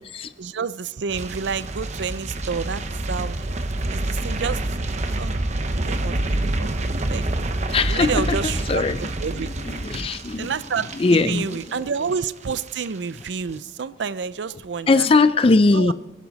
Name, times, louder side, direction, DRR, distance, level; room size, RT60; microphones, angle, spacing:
voice 1, 0.4-3.5 3.9-4.7 5.2-5.4 5.7-6.7 7.1-7.2 7.9-8.8 9.2-9.8 10.4-15.1 15.7-15.9, right 5 dB, 90° right, 16 dB, 0.5 m, -29 dB
sound 1, 1.1-12.2 12.5-12.9 13.2-13.3, right 2 dB, 40° right, 0.9 m, -27 dB
voice 2, 7.7-10.5 10.9-11.6 14.9-15.9, left 3 dB, 30° left, 12 dB, 0.4 m, -20 dB
23.0 x 11.0 x 4.1 m, 1.1 s
head